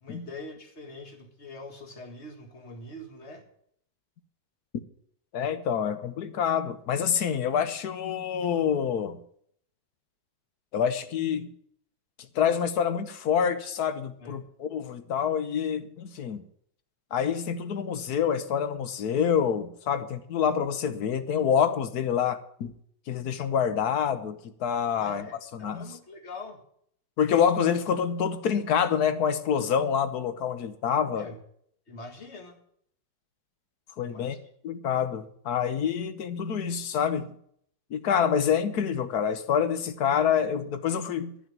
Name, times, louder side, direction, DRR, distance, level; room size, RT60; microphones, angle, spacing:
voice 1, 0.0-3.4 14.2-14.4 25.0-26.6 31.2-31.4 31.9-32.6 34.0-34.5, left 2 dB, 35° left, 2.0 m, -44 dB
voice 2, 5.3-9.2 10.7-11.5 12.3-16.4 17.1-22.7 23.1-25.3 25.5-25.9 27.2-31.3 34.0-34.3 34.6-37.3 37.9-41.3, left 7 dB, 60° left, 1.3 m, -27 dB
12.5 x 7.0 x 9.1 m
omnidirectional pair, 2.2 m